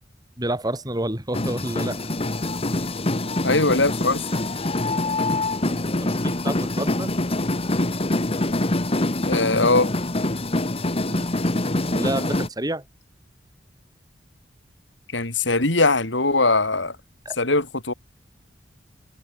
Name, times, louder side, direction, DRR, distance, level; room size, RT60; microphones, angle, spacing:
voice 1, 0.4-2.0 5.6-7.1 11.1-11.3 11.9-12.8 17.2-17.4, right 1 dB, 20° right, 6.6 m, -29 dB
sound 1, 1.3-12.5, left 2 dB, 30° left, 1.6 m, -25 dB
voice 2, 3.4-4.2 9.3-9.9 15.1-17.0 17.4-17.9, left 2 dB, 80° left, 4.9 m, -20 dB
head